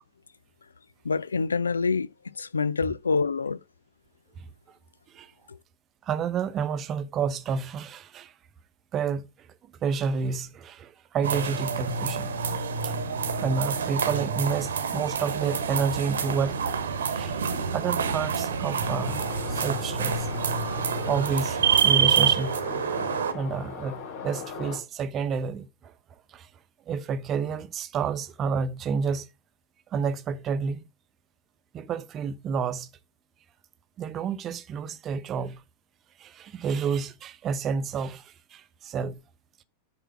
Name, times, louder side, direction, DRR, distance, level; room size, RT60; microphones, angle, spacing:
voice 1, 1.0-3.6 5.5-5.6, left 4 dB, 75° left, 0.4 m, -27 dB
voice 2, 6.1-8.3 8.9-9.2 9.8-12.4 12.8-12.9 13.4-17.4 17.7-20.3 21.1-22.6 23.3-25.7 26.3-26.5 26.9-29.3 29.9-30.8 31.7-32.9 34.0-35.6 36.2-39.2, right 6 dB, 30° right, 0.9 m, -30 dB
sound 1, 11.2-23.3, right 6 dB, 65° right, 1.1 m, -27 dB
sound 2, 18.8-24.8, left 5 dB, 55° left, 6.4 m, -39 dB
10.0 x 4.3 x 6.1 m
figure-of-eight pair, 90°, 0 cm